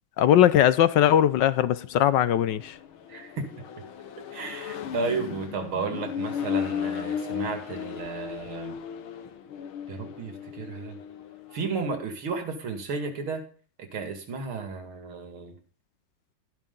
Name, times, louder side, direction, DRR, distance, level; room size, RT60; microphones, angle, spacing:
voice 1, 0.2-2.8, left 11 dB, 70° left, 1.2 m, -20 dB
Accelerating revving vroom, 1.3-11.7, left 8 dB, 85° left, 2.0 m, -36 dB
voice 2, 3.1-3.5 4.3-8.7 9.9-11.0 11.5-13.4 13.8-15.5, right 4 dB, 85° right, 2.9 m, -33 dB
12.0 x 11.5 x 3.9 m
omnidirectional pair, 2.2 m